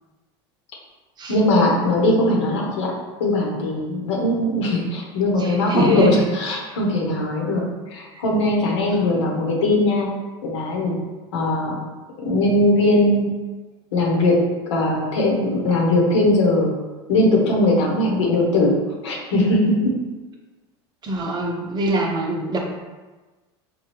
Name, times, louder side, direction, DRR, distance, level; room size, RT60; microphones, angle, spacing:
voice 1, 1.3-2.9 3.2-7.6 7.9-10.1 10.4-10.9 11.3-11.8 12.2-13.3 13.9-14.4 14.7-16.7 17.1-18.7 19.0-19.9, left 1 dB, 80° left, -2 dB, 1.0 m, -20 dB
voice 2, 5.4-6.3 21.0-22.6, right 1 dB, 30° right, 0 dB, 0.7 m, -22 dB
4.4 x 2.3 x 3.2 m, 1.2 s
hypercardioid pair, 100°, 15 cm